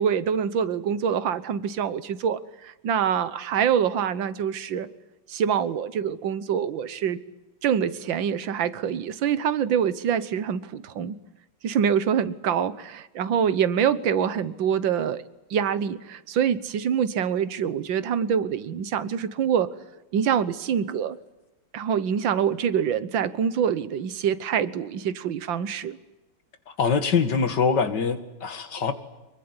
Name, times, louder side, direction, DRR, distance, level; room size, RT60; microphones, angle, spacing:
voice 1, 0.0-4.9 5.3-7.2 7.6-11.2 11.6-15.2 15.5-19.7 20.1-21.2 21.7-26.0, right 8 dB, 85° right, 15 dB, 1.9 m, -25 dB
voice 2, 26.8-28.9, left 5 dB, 65° left, 10 dB, 2.5 m, -23 dB
25.0 x 22.5 x 9.7 m, 1.0 s
omnidirectional pair, 2.0 m